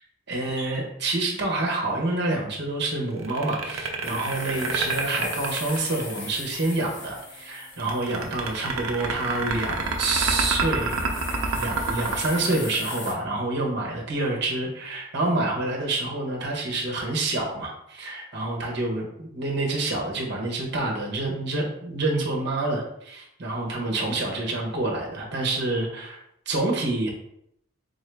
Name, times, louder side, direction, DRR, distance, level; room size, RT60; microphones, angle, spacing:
voice 1, 0.3-11.1 11.5-26.2 26.5-27.1, right 2 dB, 55° right, -1 dB, 1.0 m, -27 dB
sound 1, 3.2-6.4 7.8-13.3, right 4 dB, 85° right, 0.6 m, -28 dB
sound 2, 4.0-13.1, left 3 dB, 60° left, 0.8 m, -40 dB
3.9 x 2.7 x 3.3 m, 0.74 s
head